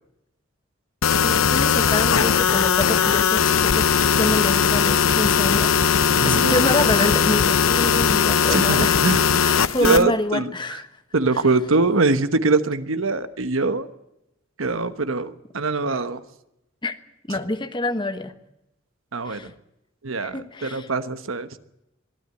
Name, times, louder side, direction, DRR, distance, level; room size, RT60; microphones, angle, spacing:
sound 1, 1.0-10.0, left 7 dB, 90° left, 0.7 m, -19 dB
voice 1, 1.2-3.9 4.2-5.7 6.2-9.0 9.4-10.8 16.8-16.9 17.3-18.3 19.2-19.5 20.2-20.9, left 2 dB, 25° left, 9 dB, 1.2 m, -26 dB
voice 2, 6.2-6.6 8.5-9.2 9.8-10.8 11.1-13.9 14.6-16.2 17.3-17.4 19.1-19.5 20.0-21.5, right 3 dB, 85° right, 11 dB, 1.2 m, -23 dB
22.5 x 13.0 x 9.7 m, 0.88 s
head